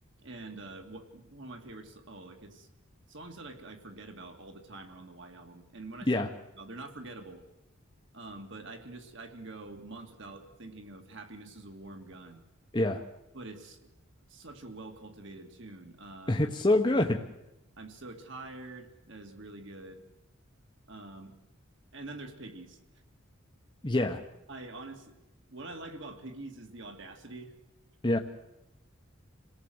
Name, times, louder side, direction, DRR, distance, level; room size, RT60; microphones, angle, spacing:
voice 1, 0.2-2.7 3.1-6.2 6.6-7.4 8.1-12.4 13.3-13.9 14.3-16.4 17.8-20.1 20.9-21.3 21.9-22.8 24.5-25.2 25.5-27.5, right 2 dB, 65° right, 5 dB, 2.5 m, -45 dB
voice 2, 16.3-17.2 23.8-24.2 28.0-28.2, left 1 dB, 25° left, 3 dB, 1.1 m, -25 dB
28.0 x 18.0 x 7.9 m, 0.96 s
head